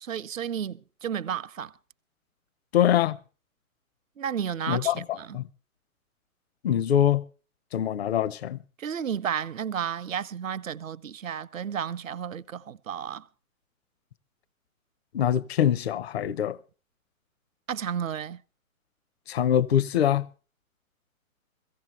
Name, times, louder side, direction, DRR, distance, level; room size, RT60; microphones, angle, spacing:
voice 1, 0.0-1.7 4.2-5.4 8.8-13.2 17.7-18.4, right 8 dB, 65° right, 0.7 m, -32 dB
voice 2, 2.7-3.2 4.7-5.5 6.6-7.2 7.7-8.6 15.1-16.6 19.3-20.3, left 10 dB, 45° left, 0.7 m, -24 dB
17.0 x 15.5 x 4.4 m
figure-of-eight pair, 120°, 43 cm